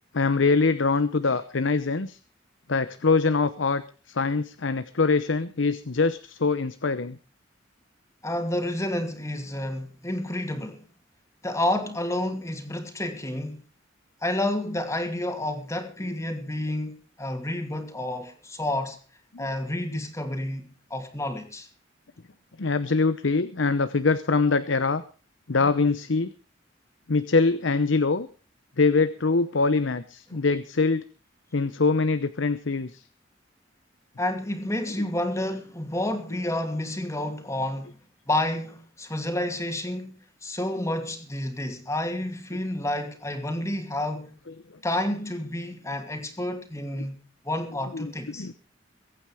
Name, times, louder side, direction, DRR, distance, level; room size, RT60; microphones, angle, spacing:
voice 1, 0.1-2.2 2.7-7.2 19.3-19.5 22.6-25.0 25.5-26.3 27.1-28.3 28.8-31.0 31.5-33.0 47.9-48.5, left 4 dB, 80° left, 0.9 m, -24 dB
voice 2, 8.2-10.8 11.4-13.6 14.2-19.0 19.4-21.7 30.3-30.4 34.2-38.0 38.3-40.1 40.4-44.4 44.8-48.5, left 1 dB, 15° left, 2.6 m, -30 dB
23.0 x 9.0 x 5.0 m
head